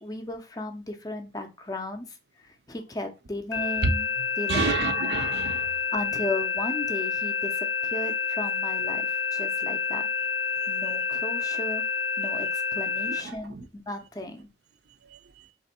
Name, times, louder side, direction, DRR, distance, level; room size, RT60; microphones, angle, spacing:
voice 1, 0.0-2.2 2.4-4.1 4.4-5.0 5.9-10.1 10.7-14.5, left 1 dB, 20° left, 0.5 m, -35 dB
sound 1, 3.5-13.2, left 5 dB, 85° left, 0.6 m, -28 dB
voice 2, 4.5-5.8 13.2-13.6 15.1-15.5, right 4 dB, 65° right, 0.5 m, -30 dB
3.4 x 2.6 x 4.2 m
head